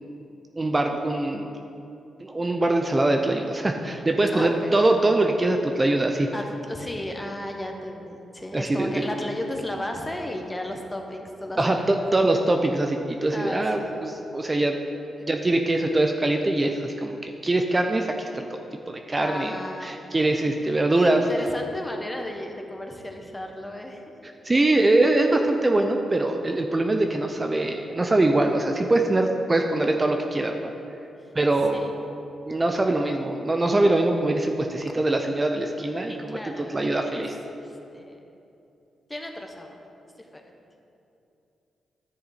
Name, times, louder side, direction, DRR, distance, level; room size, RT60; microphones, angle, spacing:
voice 1, 0.6-1.5 2.2-6.3 8.5-9.1 11.6-14.8 15.3-18.6 18.9-21.3 24.4-30.7 31.3-31.8 32.5-37.3, right 2 dB, 30° right, 4 dB, 0.6 m, -23 dB
voice 2, 4.3-4.9 6.3-12.3 13.3-14.0 19.2-20.3 20.9-24.0 31.6-32.2 36.1-37.2 37.6-38.2 39.1-39.8 40.2-40.4, left 1 dB, 20° left, 2 dB, 1.3 m, -35 dB
11.0 x 6.7 x 4.2 m, 2.7 s
supercardioid pair, 55°, 0 cm